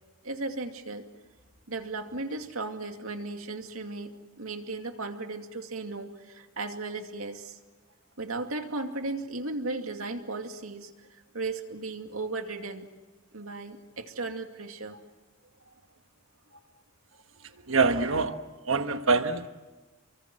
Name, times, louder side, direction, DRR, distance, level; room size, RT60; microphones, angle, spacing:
voice 1, 0.2-1.1 1.7-7.6 8.2-10.9 11.3-12.9 13.3-15.0, right 3 dB, 85° right, 5 dB, 2.5 m, -36 dB
voice 2, 17.4-19.6, right 4 dB, 70° right, 8 dB, 1.4 m, -26 dB
30.0 x 23.5 x 7.7 m, 1.2 s
head